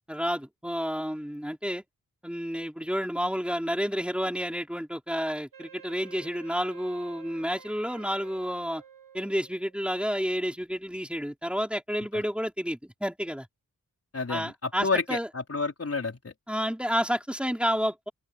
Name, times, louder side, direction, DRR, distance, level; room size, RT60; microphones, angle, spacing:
voice 1, 0.1-1.8 2.2-8.8 9.1-13.5 14.3-15.3 16.5-18.1, equal, 5° right, 4.9 m, -30 dB
Wind instrument woodwind instrument, 5.5-9.8, right 7 dB, 65° right, 3.1 m, -51 dB
voice 2, 14.1-16.3, left 4 dB, 45° left, 4.6 m, -30 dB
open air
cardioid pair, 60°, 35 cm